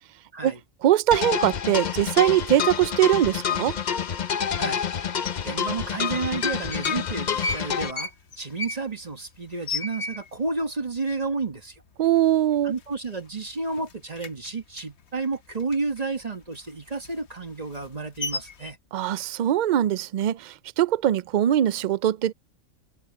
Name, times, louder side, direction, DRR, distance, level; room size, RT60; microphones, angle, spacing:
voice 1, 0.8-3.8 12.0-12.7 18.9-22.3, right 12 dB, 65° right, 0.4 m, -22 dB
sound 1, 1.1-7.9, left 8 dB, 45° left, 0.7 m, -28 dB
voice 2, 4.6-4.9 5.4-11.8 12.6-18.8, right 3 dB, 35° right, 1.3 m, -31 dB
sound 2, 5.2-5.3 6.2-7.0 7.3-10.6 10.9-11.0 11.2-11.8 12.2-12.3 12.6-13.4 13.7-16.1 16.4-18.7, left 3 dB, 65° left, 1.3 m, -34 dB
omnidirectional pair, 1.3 m